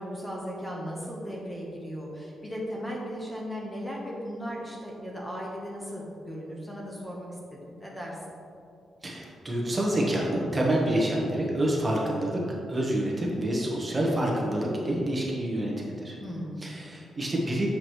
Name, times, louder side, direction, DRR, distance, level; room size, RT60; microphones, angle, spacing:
voice 1, 0.0-8.1 16.2-16.6, equal, 15° left, -3 dB, 1.0 m, -37 dB
voice 2, 9.0-16.2 16.6-17.7, right 1 dB, 25° right, -2 dB, 1.2 m, -27 dB
7.9 x 5.0 x 3.1 m, 2.6 s
cardioid pair, 95°, 0 cm